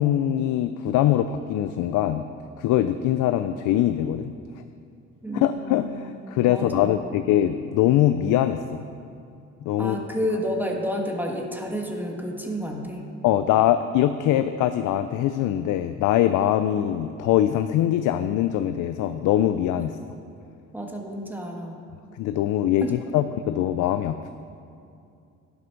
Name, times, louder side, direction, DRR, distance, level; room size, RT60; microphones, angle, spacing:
voice 1, 0.0-2.3 2.6-4.3 5.3-8.8 9.7-10.0 13.2-19.9 22.2-24.3, left 12 dB, 85° left, 10 dB, 0.5 m, -22 dB
voice 2, 5.2-7.1 9.8-13.1 20.7-21.8 22.8-22.9, equal, 5° right, 1 dB, 1.4 m, -30 dB
10.0 x 8.1 x 5.9 m, 2.6 s
cardioid pair, 90°, 30 cm